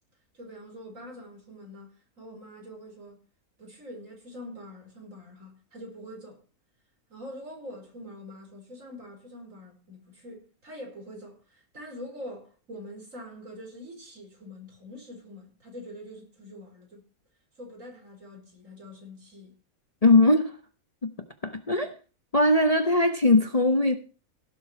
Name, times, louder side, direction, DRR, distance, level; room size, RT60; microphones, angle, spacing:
voice 1, 0.3-3.2 3.6-6.4 7.1-17.0 17.6-19.5, equal, 60° right, 5.3 m, -44 dB
voice 2, 20.0-20.6 21.0-21.1 21.4-21.9 22.3-24.0, left 2 dB, 30° left, 1.0 m, -20 dB
17.0 x 7.6 x 4.5 m
omnidirectional pair, 1.5 m